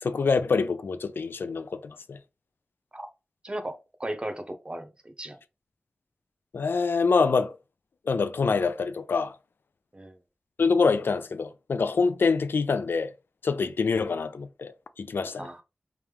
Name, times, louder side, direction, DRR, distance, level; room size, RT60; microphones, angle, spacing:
voice 1, 0.0-2.2 6.5-7.6 8.1-9.3 10.6-13.1 13.4-15.5, left 4 dB, 85° left, 0.4 m, -25 dB
voice 2, 3.4-5.4 9.9-10.2 15.4-15.6, right 1 dB, 30° right, 0.7 m, -36 dB
3.4 x 3.0 x 3.4 m
wide cardioid pair, 75°, 4 cm